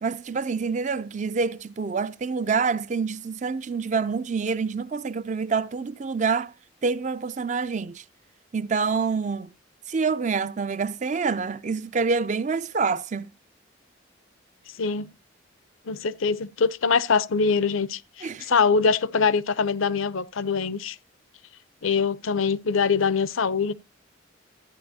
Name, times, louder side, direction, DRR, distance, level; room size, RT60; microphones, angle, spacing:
voice 1, 0.0-6.5 6.8-8.0 8.5-9.5 9.9-13.3 18.2-18.6, right 5 dB, 35° right, 0.4 m, -27 dB
voice 2, 15.9-21.0 21.8-23.7, left 5 dB, 80° left, 0.7 m, -23 dB
14.0 x 9.3 x 2.8 m
head